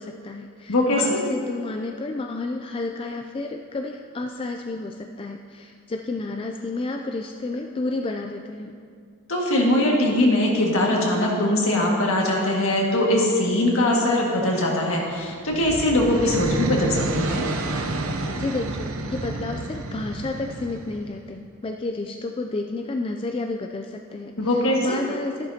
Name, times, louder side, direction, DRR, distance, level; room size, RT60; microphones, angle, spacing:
voice 1, 0.0-8.7 18.4-24.3 24.8-25.5, left 2 dB, 25° left, 4 dB, 0.3 m, -31 dB
voice 2, 0.7-1.0 9.3-17.5 24.4-25.0, left 1 dB, 70° left, -2 dB, 1.8 m, -21 dB
sound 1, 15.2-21.2, right 2 dB, 75° right, 0.8 m, -30 dB
13.0 x 10.5 x 2.8 m, 2.2 s
head